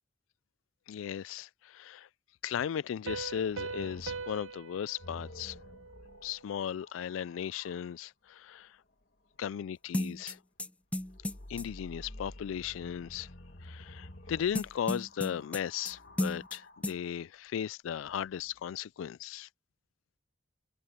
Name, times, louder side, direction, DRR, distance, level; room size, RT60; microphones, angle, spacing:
voice 1, 0.9-2.1 2.4-5.6 6.2-8.7 9.4-10.4 11.5-13.3 13.6-19.5, left 9 dB, 90° left, 0.3 m, -36 dB
Piano, 3.1-6.5, right 4 dB, 85° right, 0.6 m, -42 dB
sound 1, 3.3-8.0 10.9-17.1 18.0-18.6, left 1 dB, 55° left, 1.6 m, -51 dB
sound 2, 9.9-11.7 14.5-15.9 16.2-16.6 16.8-16.9, left 1 dB, 5° left, 0.4 m, -34 dB
head